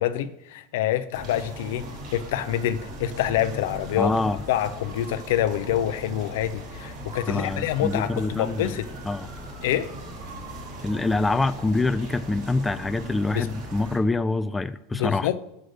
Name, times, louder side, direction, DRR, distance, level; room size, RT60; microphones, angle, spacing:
voice 1, 0.0-1.8 2.1-4.1 4.5-8.9 9.6-9.9 13.3-13.5 14.9-15.4, left 12 dB, 70° left, 12 dB, 0.6 m, -26 dB
sound 1, 1.1-14.0, right 1 dB, 55° right, 3.6 m, -39 dB
voice 2, 4.0-4.4 7.3-8.8 9.0-9.3 10.8-15.3, left 2 dB, 10° left, 11 dB, 0.4 m, -25 dB
6.5 x 6.3 x 6.5 m, 0.81 s
hypercardioid pair, 105°, 0 cm